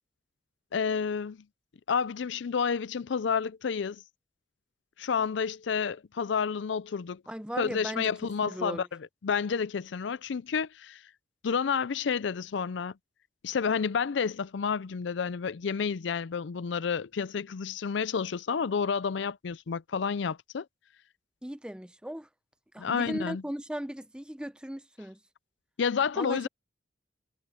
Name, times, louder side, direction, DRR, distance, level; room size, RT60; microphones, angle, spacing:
voice 1, 0.7-1.4 1.9-4.0 5.0-7.2 7.6-8.9 9.2-11.0 11.4-12.9 13.4-20.7 22.8-23.4 25.8-26.5, left 6 dB, 70° left, 0.5 m, -30 dB
voice 2, 7.3-8.2 8.4-8.9 21.4-22.3 22.7-25.2 26.2-26.5, equal, 5° right, 0.7 m, -37 dB
head